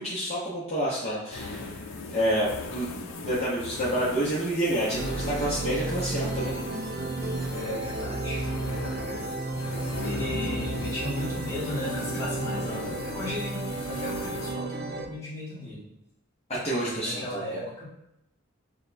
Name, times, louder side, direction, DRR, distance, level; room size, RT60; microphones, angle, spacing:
voice 1, 0.0-1.8 2.1-2.9 3.2-6.5 16.6-17.4, right 1 dB, 30° left, -9 dB, 0.8 m, -28 dB
sound 1, 1.3-14.5, left 3 dB, 85° left, 0.5 m, -38 dB
sound 2, 4.9-15.1, right 2 dB, 50° right, 0.4 m, -33 dB
voice 2, 7.5-9.3 10.0-15.9 16.8-17.8, left 1 dB, 15° left, -8 dB, 1.4 m, -36 dB
6.3 x 2.2 x 2.6 m, 0.83 s
head